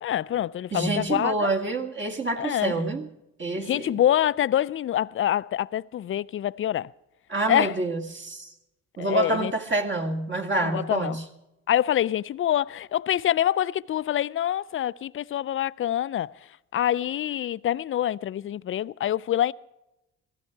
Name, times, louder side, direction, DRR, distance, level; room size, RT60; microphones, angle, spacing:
voice 1, 0.0-1.5 2.4-2.8 3.6-6.9 7.5-7.7 9.0-9.5 10.6-11.2 11.7-16.3 16.7-19.5, left 11 dB, 45° left, 0.5 m, -26 dB
voice 2, 0.7-3.1 3.4-4.0 7.3-8.5 9.0-11.2, right 2 dB, 40° right, 1.9 m, -27 dB
17.0 x 14.5 x 4.6 m
cardioid pair, 90°, 30 cm